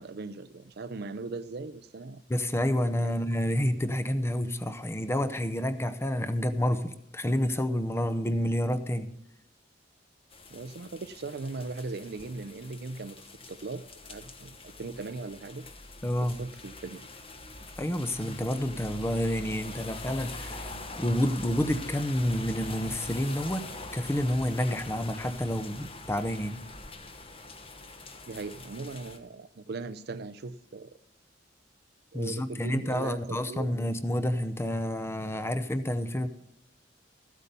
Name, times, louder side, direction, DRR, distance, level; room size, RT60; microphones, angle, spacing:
voice 1, 0.0-2.2 3.0-3.1 10.5-13.8 14.1-15.7 16.2-17.1 28.3-30.9 32.1-34.0, right 3 dB, 60° right, 0.5 m, -39 dB
voice 2, 2.3-9.1 16.0-16.4 17.8-23.6 23.9-26.6 32.1-36.3, left 1 dB, 15° left, 0.7 m, -29 dB
sound 1, 10.3-29.2, left 2 dB, 30° left, 1.1 m, -43 dB
14.5 x 8.3 x 5.4 m
head